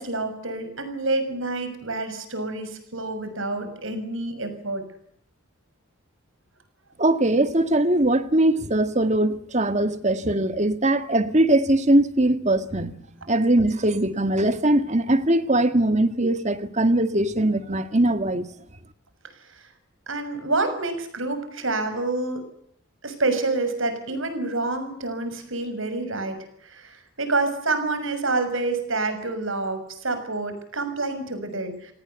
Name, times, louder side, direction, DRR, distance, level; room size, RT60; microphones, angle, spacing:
voice 1, 0.0-4.8 19.5-19.6 20.1-22.4 23.0-31.9, right 3 dB, 65° right, 6.4 m, -28 dB
voice 2, 7.0-12.9 13.3-18.5, right 1 dB, 35° right, 1.8 m, -21 dB
28.5 x 18.5 x 8.2 m
head